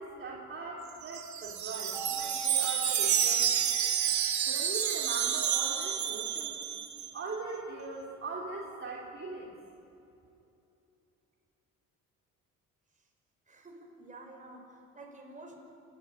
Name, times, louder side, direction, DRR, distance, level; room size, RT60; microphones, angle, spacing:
voice 1, 0.0-3.5 4.4-6.6 7.1-9.5, right 3 dB, 40° right, -3 dB, 3.5 m, -40 dB
Wind chime, 0.9-7.1, right 9 dB, 60° right, 2.3 m, -30 dB
Keyboard (musical), 1.9-4.5, right 5 dB, 5° left, 8.0 m, -45 dB
voice 2, 13.5-15.6, right 2 dB, 25° right, 1 dB, 5.7 m, -50 dB
28.0 x 13.0 x 9.9 m, 2.9 s
cardioid pair, 115°, 32 cm